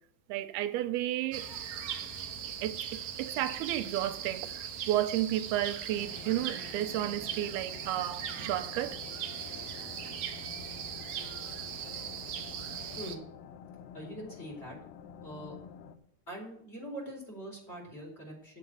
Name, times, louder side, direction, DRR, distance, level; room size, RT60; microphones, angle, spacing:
voice 1, 0.3-1.5 2.6-9.0, right 13 dB, 90° right, 2.6 m, -32 dB
sound 1, 1.3-13.2, right 8 dB, 70° right, 1.5 m, -39 dB
sound 2, 6.0-16.0, left 7 dB, 75° left, 2.3 m, -49 dB
voice 2, 13.9-14.8 15.2-15.6 16.3-18.6, equal, 15° left, 4.3 m, -43 dB
9.7 x 7.6 x 7.8 m
omnidirectional pair, 4.4 m